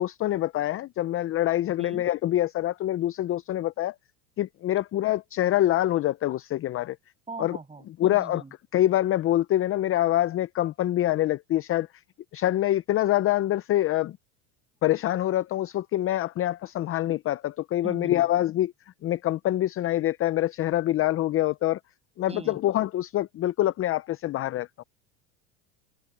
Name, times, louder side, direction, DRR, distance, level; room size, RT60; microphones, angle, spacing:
voice 1, 0.0-3.9 4.4-7.0 7.4-7.6 8.0-8.4 8.7-11.9 12.3-14.2 14.8-18.7 19.0-21.8 22.2-24.8, left 14 dB, 30° left, 0.6 m, -25 dB
voice 2, 7.3-8.5 17.8-18.2 22.3-22.6, right 4 dB, 15° right, 7.9 m, -40 dB
supercardioid pair, 110°, 42 cm